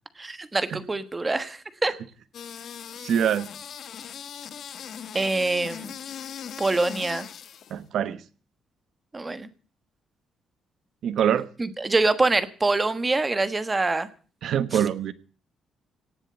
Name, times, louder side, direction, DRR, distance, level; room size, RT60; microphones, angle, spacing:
voice 1, 0.2-1.9 5.1-5.9 6.6-7.3 9.1-9.5 11.6-14.1 14.7-14.8, right 3 dB, 15° right, 12 dB, 1.3 m, -25 dB
sound 1, 2.3-7.8, left 8 dB, 50° left, 1.1 m, -39 dB
voice 2, 3.0-3.5 7.7-8.2 11.0-11.5 14.4-15.1, right 9 dB, 55° right, 14 dB, 1.2 m, -24 dB
18.0 x 7.6 x 8.8 m, 0.40 s
cardioid pair, 170°, 0 cm